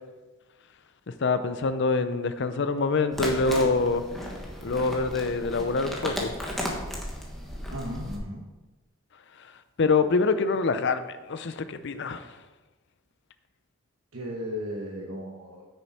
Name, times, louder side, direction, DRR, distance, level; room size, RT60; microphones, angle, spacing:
voice 1, 1.1-4.0 4.6-6.3 9.8-12.3, left 4 dB, 55° left, 11 dB, 0.5 m, -25 dB
sound 1, 3.1-8.2, equal, ahead, 1.3 m, -34 dB
voice 2, 7.7-8.4 14.1-15.6, equal, 65° right, -1 dB, 1.2 m, -35 dB
9.3 x 6.6 x 4.2 m, 1.2 s
head